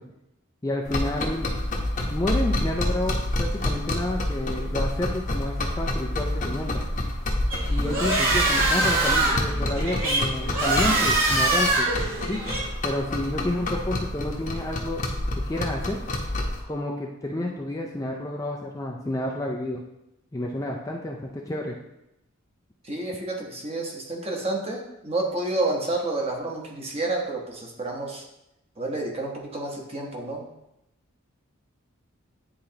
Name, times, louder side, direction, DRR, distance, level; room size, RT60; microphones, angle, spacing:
voice 1, 0.6-1.5 2.1-6.8 7.7-11.9 12.3-12.4 12.8-15.0 15.5-16.0 16.6-19.8 20.3-21.8, left 1 dB, 15° left, -1 dB, 0.4 m, -30 dB
sound 1, 0.9-16.6, left 1 dB, 35° left, 0.9 m, -28 dB
sound 2, 7.5-12.6, right 2 dB, 65° right, 2.0 m, -24 dB
voice 2, 22.8-28.2 28.8-30.4, right 2 dB, 30° right, 0 dB, 1.0 m, -29 dB
9.6 x 3.8 x 2.9 m, 0.87 s
head